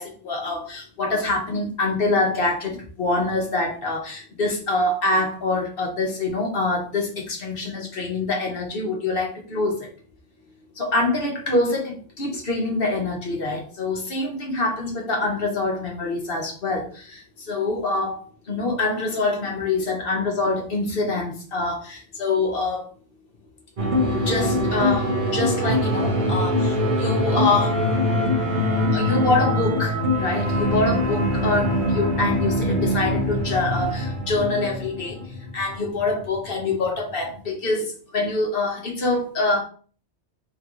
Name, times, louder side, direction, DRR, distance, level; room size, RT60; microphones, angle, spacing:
voice 1, 0.0-9.9 10.8-17.2 17.5-22.9 24.3-27.8 28.9-35.2 35.5-39.6, left 2 dB, 55° left, 0 dB, 1.3 m, -25 dB
sound 1, 23.8-37.4, left 1 dB, 50° right, 1.0 m, -23 dB
3.8 x 3.5 x 3.0 m, 0.41 s
omnidirectional pair, 1.1 m